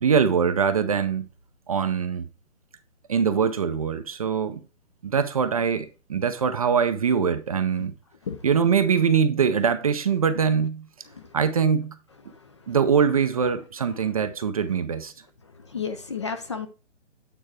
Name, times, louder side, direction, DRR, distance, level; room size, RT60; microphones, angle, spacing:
voice 1, 0.0-1.3 1.7-2.3 3.1-4.6 5.0-7.9 8.4-10.9 11.3-12.0 12.7-15.1, right 6 dB, 30° right, 0.5 m, -23 dB
voice 2, 12.3-12.8 15.6-16.7, left 6 dB, 25° left, 0.5 m, -33 dB
9.0 x 4.0 x 4.6 m
hypercardioid pair, 150°, 37 cm